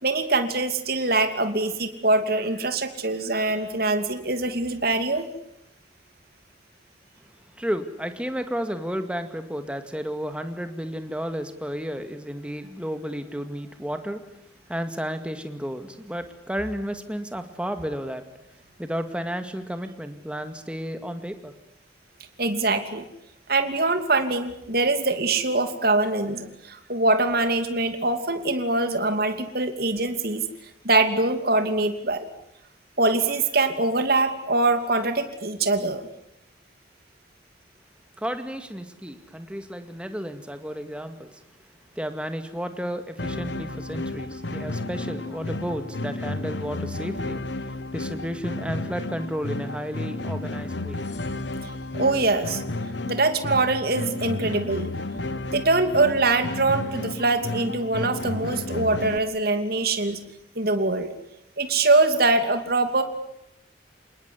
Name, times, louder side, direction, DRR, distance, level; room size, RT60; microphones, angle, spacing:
voice 1, 0.0-5.3 22.4-23.0 23.5-30.5 30.8-32.3 33.0-36.0 51.6-52.6 53.1-54.9 55.5-60.2 60.6-61.1 61.6-63.0, right 2 dB, 55° right, 8 dB, 2.8 m, -23 dB
voice 2, 7.5-14.2 14.7-18.2 18.8-21.5 38.2-41.4 42.0-51.0, equal, 5° right, 8 dB, 2.2 m, -32 dB
sound 1, 43.2-59.2, left 2 dB, 70° left, 1.4 m, -32 dB
28.0 x 20.0 x 9.8 m, 0.80 s
head